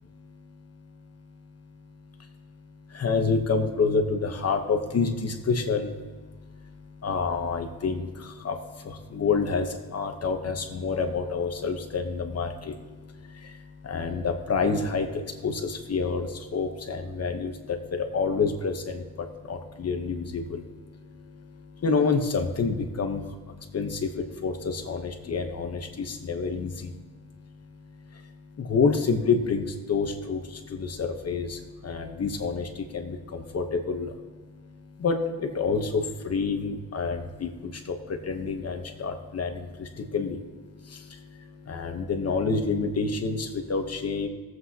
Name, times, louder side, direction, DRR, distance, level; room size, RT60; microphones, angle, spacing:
voice 1, 2.9-5.9 7.0-8.0 8.4-8.5 9.1-9.7 9.9-12.5 13.9-15.1 15.4-17.5 18.1-18.7 19.5-20.6 21.8-23.2 23.7-24.0 24.4-26.7 28.6-30.4 30.8-31.6 31.8-32.7 32.9-34.1 35.0-35.2 35.6-37.5 38.3-39.5 40.1-40.4 41.7-44.3, left 4 dB, 45° left, 5 dB, 1.0 m, -27 dB
18.5 x 7.8 x 2.8 m, 1.5 s
cardioid pair, 115°, 36 cm